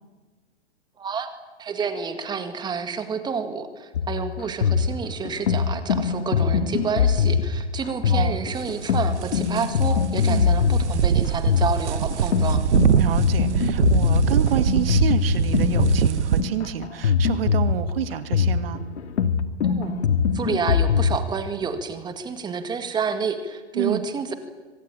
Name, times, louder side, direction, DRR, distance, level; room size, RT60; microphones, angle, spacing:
voice 1, 1.0-1.3 1.6-12.6 19.6-19.9 20.3-24.3, right 5 dB, 10° right, 9 dB, 1.9 m, -29 dB
sound 1, 3.9-21.2, left 6 dB, 70° left, 1.9 m, -22 dB
voice 2, 8.1-8.4 10.3-10.5 13.0-18.8 23.7-24.0, right 10 dB, 55° right, 10 dB, 2.3 m, -29 dB
sound 2, 8.5-16.4, right 8 dB, 75° right, 1.2 m, -23 dB
25.0 x 20.0 x 9.1 m, 1.3 s
hypercardioid pair, 140°, 34 cm